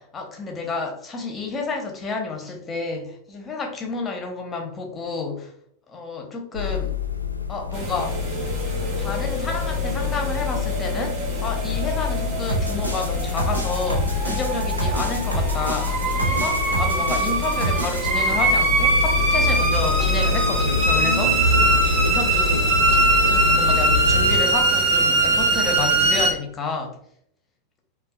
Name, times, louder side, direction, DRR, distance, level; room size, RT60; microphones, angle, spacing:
voice 1, 0.0-5.5 5.9-7.0 7.5-8.2 9.0-21.5 21.8-22.7 23.2-27.0, left 4 dB, 20° left, 2 dB, 0.9 m, -30 dB
sound 1, 6.5-24.4, left 4 dB, 85° left, 0.4 m, -26 dB
sound 2, 7.7-26.3, right 2 dB, 40° right, 1.0 m, -23 dB
sound 3, 12.5-18.1, right 2 dB, 80° right, 0.6 m, -28 dB
5.3 x 2.3 x 2.3 m, 0.67 s
figure-of-eight pair, 90°, 0 cm